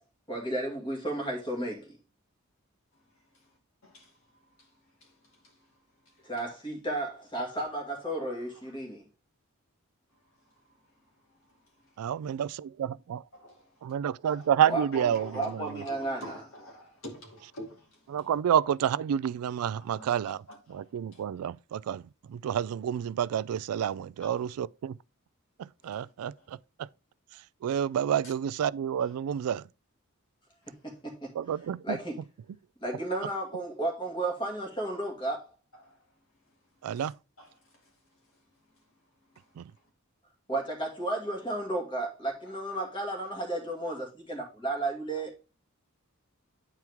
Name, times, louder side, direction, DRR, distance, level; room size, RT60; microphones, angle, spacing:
voice 1, 0.3-2.0 6.2-9.0 14.7-15.1 15.3-16.2 30.7-31.4 31.8-32.2 32.8-35.5 40.5-45.4, right 2 dB, 20° left, 2.2 m, -33 dB
voice 2, 2.9-3.6 3.8-6.5 7.8-7.9 8.2-8.8 10.1-12.1 13.3-13.6 14.2-14.5 14.9-18.3 19.9-21.2 24.2-24.5 25.8-26.5 28.2-28.3 29.0-29.2 30.6-31.0 35.0-35.1 35.7-39.5 41.3-41.7 42.4-42.9 43.2-43.3, equal, 65° left, 2.6 m, -51 dB
voice 3, 12.0-12.5 13.1-13.2 13.9-15.8 18.1-20.4 20.7-22.0 22.3-25.0 25.6-26.9 27.6-29.6 31.4-32.0 36.8-37.1, right 9 dB, 85° right, 0.3 m, -29 dB
9.5 x 4.5 x 3.5 m
head